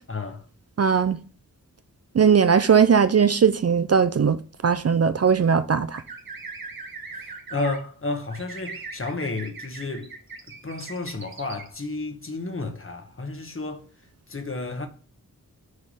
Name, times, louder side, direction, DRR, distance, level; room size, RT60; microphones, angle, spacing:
voice 1, 0.1-0.4 7.1-10.1 10.6-13.8 14.3-14.9, left 3 dB, 35° left, 1.3 m, -32 dB
voice 2, 0.8-1.2 2.1-6.0, right 6 dB, 45° right, 0.5 m, -19 dB
sound 1, 5.9-7.8 8.3-11.7, right 4 dB, 75° right, 1.3 m, -40 dB
6.6 x 3.5 x 5.6 m
wide cardioid pair, 60°, 35 cm